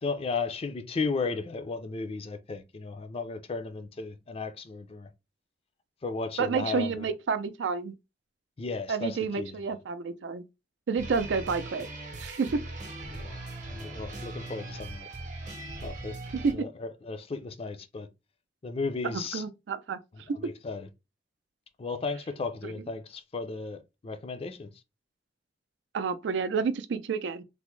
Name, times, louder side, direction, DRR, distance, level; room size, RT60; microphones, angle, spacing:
voice 1, 0.0-5.1 6.0-7.1 8.6-9.5 13.1-13.4 13.7-15.1 15.8-16.2 16.5-18.1 18.6-19.4 20.3-20.9 21.8-24.7, left 4 dB, 35° left, 0.4 m, -35 dB
voice 2, 6.4-7.9 8.9-10.4 10.9-11.9 12.2-12.6 16.4-16.5 19.0-20.0 20.3-20.5 22.6-22.7 25.9-27.4, right 5 dB, 85° right, 0.4 m, -29 dB
sound 1, 11.0-16.5, right 2 dB, 45° right, 0.7 m, -40 dB
3.3 x 2.1 x 3.0 m
head